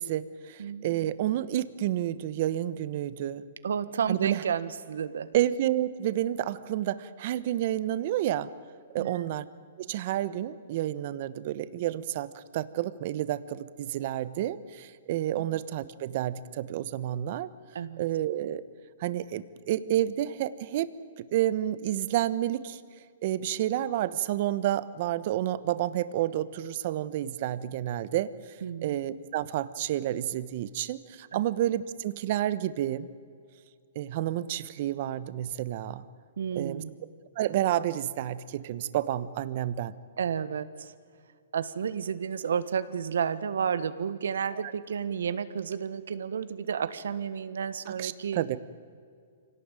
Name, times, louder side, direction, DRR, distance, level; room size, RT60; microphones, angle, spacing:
voice 1, 0.0-3.4 4.1-4.4 5.3-8.5 8.9-9.5 9.8-17.5 18.0-18.6 19.0-20.9 21.2-22.8 23.2-28.6 28.8-33.1 33.9-36.0 36.5-36.8 37.4-39.9 47.9-48.6, right 12 dB, 45° right, 15 dB, 1.1 m, -30 dB
voice 2, 0.6-1.1 3.6-5.3 9.0-9.3 17.7-18.0 28.6-29.0 31.3-31.4 36.4-36.9 40.2-40.9 41.5-48.6, right 7 dB, 80° right, 14 dB, 1.5 m, -31 dB
25.5 x 18.0 x 9.1 m, 2.2 s
hypercardioid pair, 155°, 0 cm